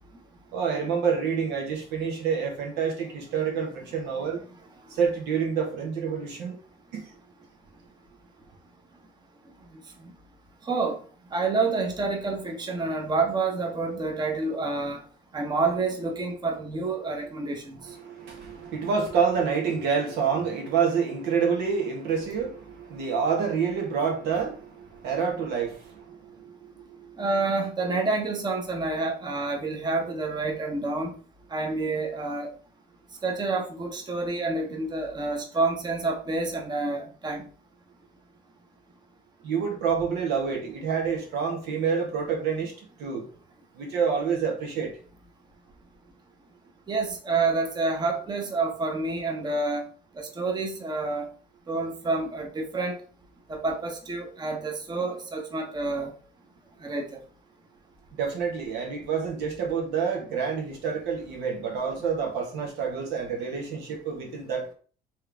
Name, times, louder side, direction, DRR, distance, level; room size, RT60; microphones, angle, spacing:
voice 1, 0.5-4.4 4.9-6.6 6.9-7.1 17.8-27.1 39.4-42.7 43.0-43.3 43.7-45.0 58.1-64.7, right 6 dB, 80° right, 1.5 m, -28 dB
voice 2, 10.7-11.0 11.3-15.0 15.3-17.8 27.2-31.1 31.5-32.5 33.2-37.5 46.9-49.8 50.2-51.3 51.7-53.0 53.5-56.1 56.8-57.1, right 3 dB, 25° right, 1.0 m, -28 dB
4.5 x 3.3 x 3.4 m
cardioid pair, 110°, 17 cm